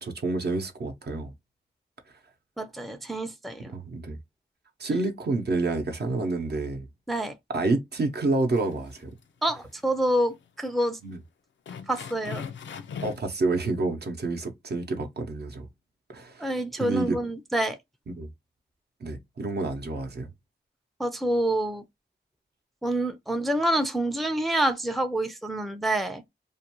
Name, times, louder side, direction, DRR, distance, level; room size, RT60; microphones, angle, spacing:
voice 1, 0.0-1.3 3.7-4.2 4.8-6.9 7.5-9.1 11.0-11.2 13.0-15.7 16.1-16.5 16.8-17.2 18.1-18.3 19.0-20.3, right 3 dB, 60° right, 0.7 m, -28 dB
voice 2, 2.6-3.7 7.1-7.3 9.4-11.0 11.9-12.4 16.4-17.8 21.0-21.8 22.8-26.2, right 1 dB, ahead, 0.4 m, -27 dB
sound 1, 8.5-9.2 9.5-9.7 10.3-10.4 10.8-10.9 11.7-13.3, left 7 dB, 85° left, 0.4 m, -39 dB
2.4 x 2.2 x 2.9 m
cardioid pair, 60°, 19 cm